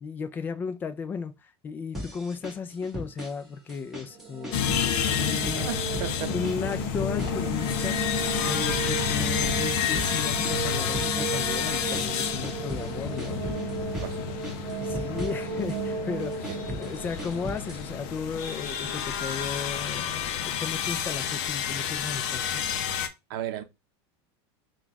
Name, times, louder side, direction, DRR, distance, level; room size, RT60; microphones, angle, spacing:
voice 1, 0.0-5.7 6.3-13.4 14.7-22.6, left 5 dB, 15° left, 0.4 m, -35 dB
sound 1, 1.9-3.4 3.7-4.9 5.2-6.1 6.4-7.9 8.2-12.9 13.2-14.1 14.4-15.8 16.2-17.9, equal, ahead, 1.3 m, -38 dB
sound 2, 4.0-19.0, right 6 dB, 40° right, 1.0 m, -35 dB
sound 3, 4.5-23.1, left 9 dB, 50° left, 0.6 m, -30 dB
voice 2, 5.5-6.4 14.0-14.4 16.5-16.6 23.3-23.6, right 12 dB, 55° right, 0.7 m, -35 dB
4.0 x 2.3 x 4.6 m
supercardioid pair, 165°, 14 cm